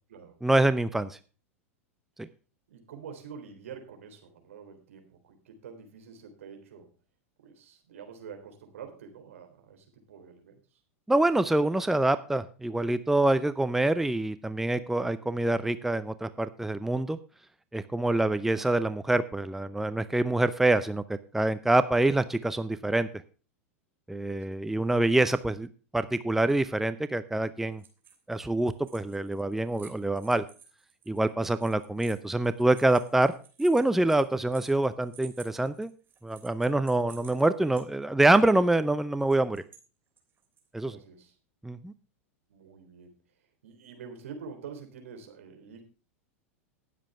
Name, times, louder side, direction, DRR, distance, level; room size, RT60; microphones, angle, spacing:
voice 1, 0.4-1.2 2.2-2.3 11.1-17.2 17.7-23.1 24.1-25.7 25.9-27.8 28.3-30.4 31.1-33.3 33.6-35.9 36.2-39.6 40.7-41.0 41.6-41.9, right 2 dB, 5° right, 13 dB, 0.7 m, -26 dB
voice 2, 2.7-6.9 7.4-10.6 18.3-18.4 24.3-24.5 31.6-31.7 40.9-41.4 42.5-43.1 43.6-45.8, right 6 dB, 70° right, 5 dB, 3.6 m, -46 dB
sound 1, 27.7-28.3 28.6-37.8 38.3-38.4 39.2-39.8 40.2-40.7, right 7 dB, 30° right, 3.2 m, -54 dB
19.0 x 7.6 x 3.3 m, 0.36 s
hypercardioid pair, 95°, 8 cm